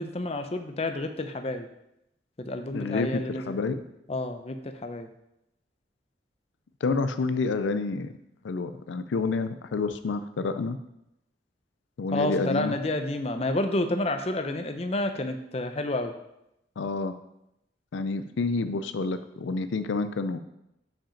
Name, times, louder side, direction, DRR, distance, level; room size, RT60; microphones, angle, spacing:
voice 1, 0.0-1.7 2.4-3.6 4.1-5.1 12.1-16.1, left 2 dB, 35° left, 7 dB, 0.5 m, -30 dB
voice 2, 2.7-3.8 6.8-8.1 8.4-10.8 12.0-12.8 16.8-17.1 17.9-20.4, left 3 dB, 85° left, 11 dB, 0.4 m, -28 dB
6.0 x 5.0 x 5.0 m, 0.83 s
head